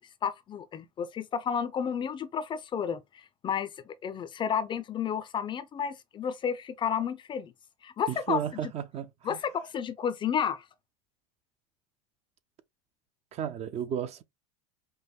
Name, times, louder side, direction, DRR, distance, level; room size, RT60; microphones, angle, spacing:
voice 1, 0.2-7.5 7.8-8.4 9.2-10.7, left 7 dB, 25° left, 0.4 m, -31 dB
voice 2, 8.1-9.4 13.3-14.2, right 9 dB, 35° right, 0.4 m, -33 dB
5.3 x 2.1 x 2.3 m
supercardioid pair, 115°, 18 cm